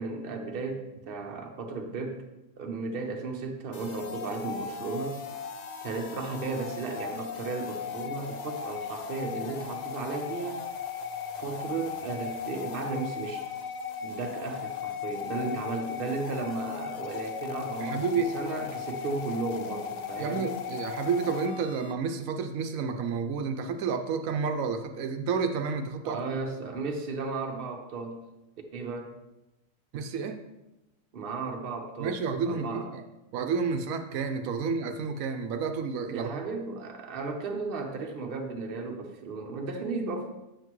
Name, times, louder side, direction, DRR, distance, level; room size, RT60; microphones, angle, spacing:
voice 1, 0.0-2.2 2.6-5.2 5.8-10.6 11.4-13.5 14.0-18.1 18.3-20.5 26.0-28.3 28.7-29.1 31.1-32.2 32.5-32.9 34.5-34.6 36.1-40.3, right 3 dB, 50° right, 2 dB, 1.0 m, -35 dB
sound 1, 3.7-21.9, left 7 dB, 85° left, 0.3 m, -37 dB
voice 2, 17.8-18.3 20.2-26.4 29.9-30.4 32.0-33.0 33.3-36.3, right 5 dB, 85° right, 7 dB, 1.0 m, -30 dB
7.9 x 6.6 x 3.0 m, 0.98 s
omnidirectional pair, 1.4 m